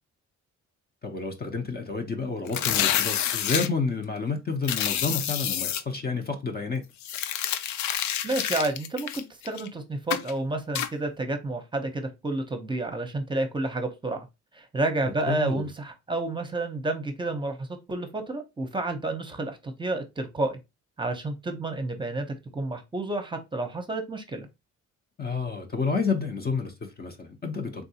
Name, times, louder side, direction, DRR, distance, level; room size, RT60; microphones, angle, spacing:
voice 1, 1.0-6.8 15.0-15.7 25.2-27.9, left 4 dB, 30° left, 0.7 m, -30 dB
sound 1, 2.5-3.7 4.6-5.8 7.0-9.7 10.1-10.3 10.8-10.9, left 10 dB, 70° left, 0.5 m, -28 dB
voice 2, 8.2-14.2 14.5-20.6 21.0-22.3 22.5-24.5, right 2 dB, 15° right, 0.8 m, -30 dB
3.6 x 2.6 x 2.7 m
cardioid pair, 90°, 30 cm